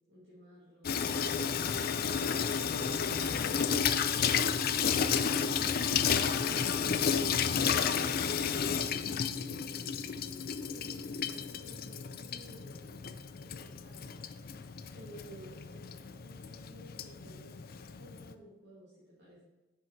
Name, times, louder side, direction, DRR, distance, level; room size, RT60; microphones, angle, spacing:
voice 1, 0.1-2.4 2.7-14.4 14.9-17.6 18.0-19.4, equal, 70° right, -8 dB, 2.3 m, -54 dB
Water tap faucet / Sink (filling or washing), 0.8-18.3, left 7 dB, 55° left, 0.4 m, -32 dB
7.8 x 5.5 x 4.6 m, 1.1 s
head